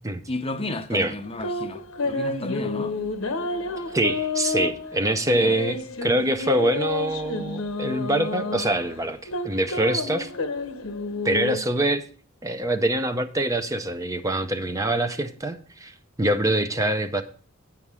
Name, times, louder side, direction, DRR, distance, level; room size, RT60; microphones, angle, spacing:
voice 1, 0.3-2.9 5.4-5.5, left 2 dB, 30° left, 0.6 m, -33 dB
sound 1, 1.2-11.6, left 3 dB, 75° left, 1.0 m, -30 dB
voice 2, 3.9-9.2 9.4-10.3 11.2-12.0 12.4-17.2, right 1 dB, 15° right, 0.6 m, -24 dB
9.1 x 7.1 x 4.8 m
head